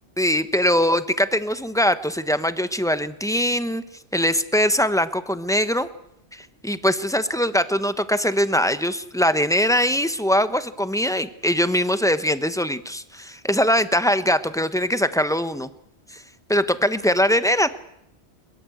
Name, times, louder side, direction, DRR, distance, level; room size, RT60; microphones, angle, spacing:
voice 1, 0.2-3.8 4.1-5.9 6.3-15.7 16.1-16.2 16.5-17.7, equal, 5° left, 12 dB, 1.0 m, -22 dB
22.5 x 22.0 x 7.9 m, 0.79 s
omnidirectional pair, 1.2 m